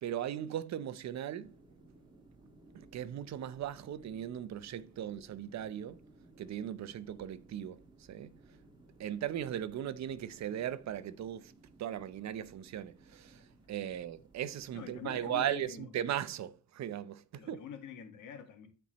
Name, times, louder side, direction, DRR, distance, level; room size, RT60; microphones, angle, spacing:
voice 1, 0.0-1.5 2.7-6.0 6.4-7.8 8.1-8.3 9.0-11.5 11.8-13.4 13.7-17.6, right 10 dB, 65° right, 0.8 m, -38 dB
sound 1, 1.4-15.8, right 2 dB, 15° right, 2.8 m, -60 dB
voice 2, 14.7-15.9 17.3-18.7, left 8 dB, 85° left, 1.8 m, -46 dB
13.0 x 4.4 x 3.1 m
cardioid pair, 90°, 30 cm